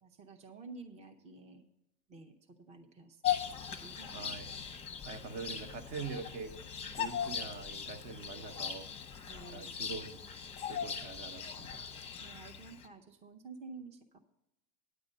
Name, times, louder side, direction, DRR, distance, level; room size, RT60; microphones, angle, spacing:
voice 1, 0.0-1.7 2.1-3.4 3.8-4.3 9.3-9.7 12.2-14.2, right 4 dB, 20° right, 5 dB, 0.6 m, -51 dB
Bird vocalization bird call bird song, 3.2-12.9, left 8 dB, 15° left, 0.7 m, -39 dB
voice 2, 4.1-4.5 5.0-8.9 9.5-10.2 10.6-11.9, right 4 dB, 50° right, 7 dB, 1.2 m, -44 dB
9.9 x 7.8 x 5.3 m, 0.98 s
supercardioid pair, 135°, 35 cm